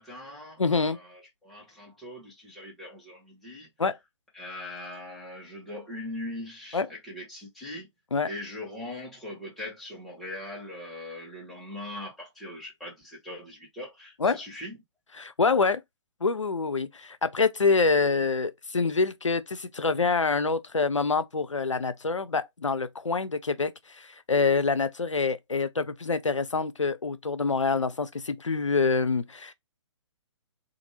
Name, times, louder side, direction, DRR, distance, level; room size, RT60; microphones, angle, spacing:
voice 1, 0.0-3.7 4.3-7.9 8.3-14.8, left 1 dB, ahead, 1.0 m, -41 dB
voice 2, 0.6-1.0 3.8-4.0 6.7-6.9 8.1-8.3 14.2-14.4 15.2-15.8 16.2-29.5, left 4 dB, 90° left, 0.4 m, -26 dB
2.6 x 2.5 x 2.9 m
figure-of-eight pair, 130°, 15 cm